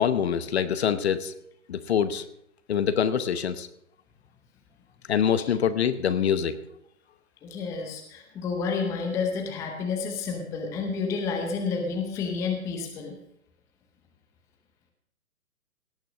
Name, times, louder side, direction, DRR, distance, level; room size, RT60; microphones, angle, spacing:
voice 1, 0.0-1.3 1.7-2.2 2.7-3.7 5.1-6.6, left 8 dB, 45° left, 12 dB, 0.9 m, -25 dB
voice 2, 7.4-13.1, left 5 dB, 5° left, 3 dB, 0.7 m, -30 dB
17.5 x 6.5 x 6.3 m, 0.77 s
figure-of-eight pair, 135°, 43 cm